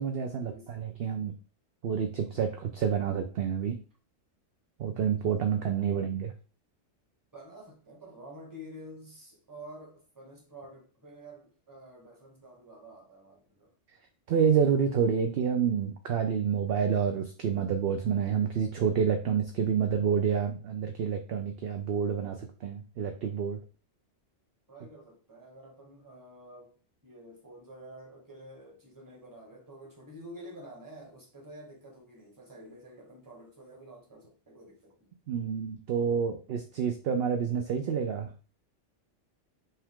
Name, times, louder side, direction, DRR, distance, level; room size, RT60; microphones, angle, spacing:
voice 1, 0.0-1.3 1.8-3.8 4.8-6.3 14.3-23.6 35.3-38.3, right 7 dB, 65° right, 0.7 m, -28 dB
voice 2, 7.3-13.7 24.7-26.8 27.0-35.1, equal, 15° right, 1.3 m, -49 dB
5.4 x 2.4 x 3.6 m
omnidirectional pair, 1.2 m